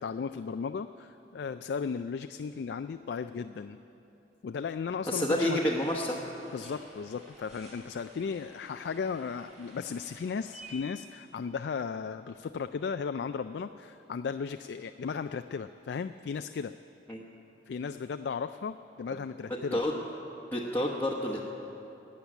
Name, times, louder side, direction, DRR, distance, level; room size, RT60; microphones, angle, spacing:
voice 1, 0.0-3.8 4.4-5.6 6.5-16.7 17.7-19.8, left 5 dB, 70° left, 9 dB, 0.3 m, -35 dB
voice 2, 5.1-6.2 17.1-17.2 19.5-20.0 20.5-21.4, left 1 dB, 10° left, -5 dB, 1.0 m, -29 dB
sound 1, 5.5-10.7, right 1 dB, 40° right, 4.0 m, -54 dB
14.0 x 8.6 x 9.9 m, 2.9 s
head